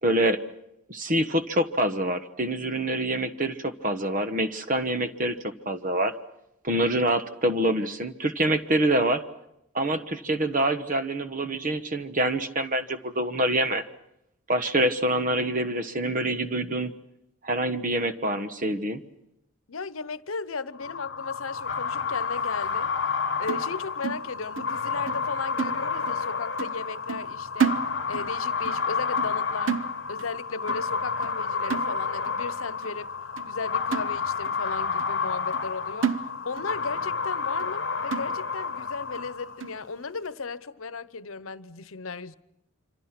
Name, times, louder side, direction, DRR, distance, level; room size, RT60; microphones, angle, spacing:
voice 1, 0.0-0.4 0.9-5.4 5.6-6.1 6.6-9.2 9.7-13.8 14.5-16.9 17.4-19.0, right 1 dB, 40° right, 1.2 m, -26 dB
voice 2, 19.7-22.9 23.4-27.8 28.1-29.8 30.1-33.1 33.4-36.2 36.4-42.4, left 4 dB, 90° left, 0.9 m, -36 dB
sound 1, 20.8-39.7, left 5 dB, 55° left, 1.1 m, -30 dB
sound 2, 23.5-24.8 25.1-25.3 25.6-26.3 26.6-26.8 27.1-28.4 28.7-28.9 29.2-29.4 29.7-30.4 30.7-30.9 31.2-31.4 31.7-32.3 32.8-32.9 33.4-33.5 33.9-34.6 35.0-35.1 35.5-35.7 36.0-36.8 37.1-37.2 37.6-37.7 38.1-38.7 39.2-39.3 39.6-39.8, right 7 dB, 70° right, 0.9 m, -31 dB
27.0 x 25.5 x 6.0 m
head